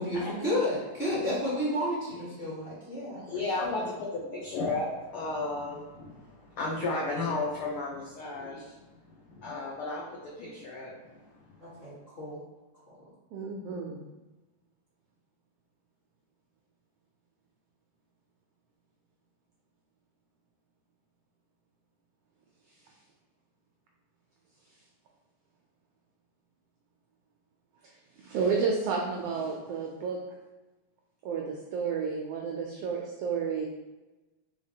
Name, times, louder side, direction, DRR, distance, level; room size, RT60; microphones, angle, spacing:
voice 1, 0.0-3.1 3.6-3.9 11.6-12.4, left 1 dB, 35° left, -10 dB, 0.9 m, -31 dB
voice 2, 3.1-8.8 9.3-11.2 11.8-11.9, left 3 dB, 85° left, -4 dB, 1.2 m, -34 dB
voice 3, 13.3-14.1 28.2-30.2 31.2-33.7, right 5 dB, 85° right, 0 dB, 1.3 m, -31 dB
4.9 x 3.4 x 2.7 m, 1.1 s
omnidirectional pair, 3.3 m